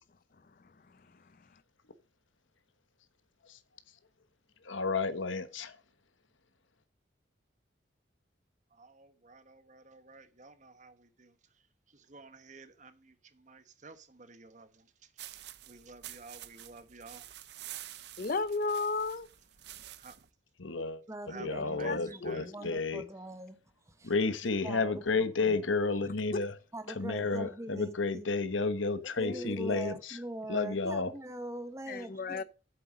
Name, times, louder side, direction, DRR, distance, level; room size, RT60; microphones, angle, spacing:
voice 1, 4.6-5.8 20.6-21.0 21.3-23.0 24.0-26.5 26.9-30.2 30.5-31.1, left 3 dB, 85° left, 1.2 m, -31 dB
voice 2, 8.7-15.4 15.7-17.5 20.0-20.1 21.3-22.5, right 3 dB, 40° right, 1.1 m, -53 dB
sound 1, 15.2-20.3, right 13 dB, 60° right, 0.7 m, -48 dB
voice 3, 18.2-19.3 21.8-22.4 26.3-26.4 29.3-29.5 31.9-32.4, left 3 dB, 45° left, 0.5 m, -33 dB
voice 4, 21.1-24.1 24.4-25.6 26.7-28.3 29.2-32.4, right 1 dB, 15° right, 1.1 m, -42 dB
7.7 x 7.7 x 6.3 m
head